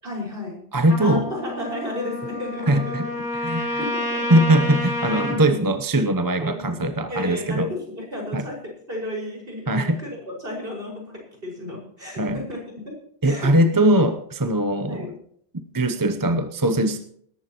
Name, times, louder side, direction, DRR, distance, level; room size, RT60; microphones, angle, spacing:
voice 1, 0.0-0.6 1.0-3.1 3.8-4.3 5.2-5.7 6.4-6.8 7.1-12.6 13.2-13.5 14.8-15.1, left 1 dB, 60° right, -2 dB, 6.0 m, -33 dB
voice 2, 0.7-1.3 2.7-3.1 3.3-3.8 4.3-7.7 8.3-8.4 9.7-10.0 12.2-12.4 13.2-15.1 15.7-17.0, right 1 dB, 20° right, 8 dB, 0.8 m, -21 dB
Trumpet, 0.9-5.4, left 1 dB, 80° left, 3.6 m, -29 dB
19.5 x 14.5 x 3.0 m, 0.65 s
omnidirectional pair, 1.1 m